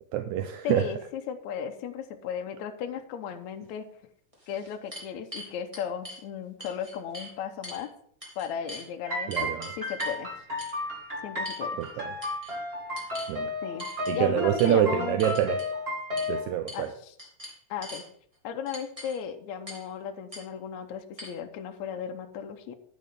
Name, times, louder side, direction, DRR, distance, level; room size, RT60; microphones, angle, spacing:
voice 1, 0.1-0.9 9.3-9.7 11.8-12.1 13.3-13.5 14.1-15.6 16.3-16.9, right 11 dB, 80° right, 8 dB, 1.9 m, -26 dB
voice 2, 0.6-3.9 4.5-7.9 8.4-10.3 11.2-11.8 13.6-13.9 14.1-15.2 16.7-17.1 17.7-18.0 18.4-22.8, left 8 dB, 70° left, 5 dB, 1.9 m, -35 dB
sound 1, 3.7-3.8 4.3-6.2 6.6-7.3 7.6-7.8 8.2-8.9 9.3-10.2 10.6-10.8 11.4-11.9 12.2-12.6 12.9-13.3 13.8-14.1 14.6-14.7 15.2-15.7 16.2-16.3 16.7-16.9 17.2-18.0 18.7-19.2 19.7-19.9 20.3-20.4 21.2-21.3, equal, 10° right, 2.3 m, -43 dB
sound 2, 9.0-16.4, left 1 dB, 25° right, 1.3 m, -33 dB
10.5 x 9.5 x 3.6 m, 0.63 s
omnidirectional pair, 3.8 m